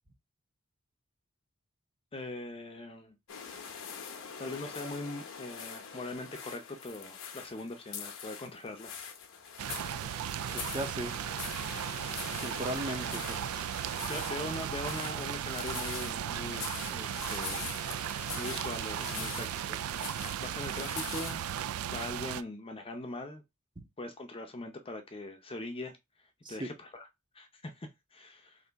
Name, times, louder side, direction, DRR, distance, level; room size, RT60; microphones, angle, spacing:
voice 1, 2.1-3.2 4.4-9.1 12.9-13.0 14.1-17.8 18.4-21.4 21.9-23.4 24.0-26.0 26.5-27.0 27.3-28.6, left 2 dB, 25° left, 0.6 m, -41 dB
sound 1, 3.3-21.6, left 7 dB, 65° left, 0.7 m, -44 dB
sound 2, 9.6-22.4, right 10 dB, 75° right, 0.3 m, -36 dB
voice 2, 10.5-11.2 12.4-13.7 26.4-26.7, right 1 dB, 20° right, 0.7 m, -37 dB
3.4 x 2.7 x 3.9 m
head